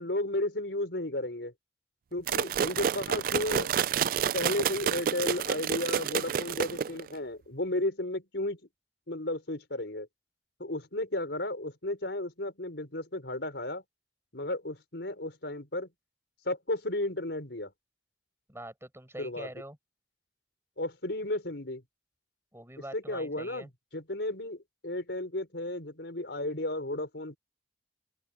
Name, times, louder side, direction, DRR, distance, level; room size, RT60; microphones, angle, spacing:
voice 1, 0.0-1.5 2.1-3.7 4.3-8.6 9.1-10.1 10.6-13.8 14.3-15.9 16.4-17.7 19.2-19.5 20.8-21.8 22.9-27.4, left 1 dB, 80° left, 4.5 m, -33 dB
sound 1, 2.3-7.1, right 8 dB, 50° right, 0.3 m, -29 dB
voice 2, 18.5-19.8 22.5-23.7, right 1 dB, 15° right, 7.3 m, -44 dB
open air
head